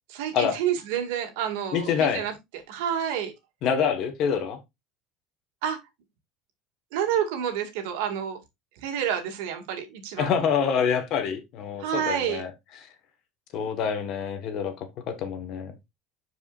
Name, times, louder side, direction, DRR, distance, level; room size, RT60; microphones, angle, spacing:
voice 1, 0.1-2.3 2.7-3.3 5.6-5.8 6.9-8.4 8.8-10.3 11.8-12.4, right 9 dB, 85° right, 2.1 m, -29 dB
voice 2, 1.7-2.2 3.6-4.6 10.2-12.5 12.8-12.9 13.5-14.7 15.1-15.7, left 7 dB, 40° left, 1.4 m, -26 dB
11.0 x 4.9 x 2.5 m
cardioid pair, 180°, 0 cm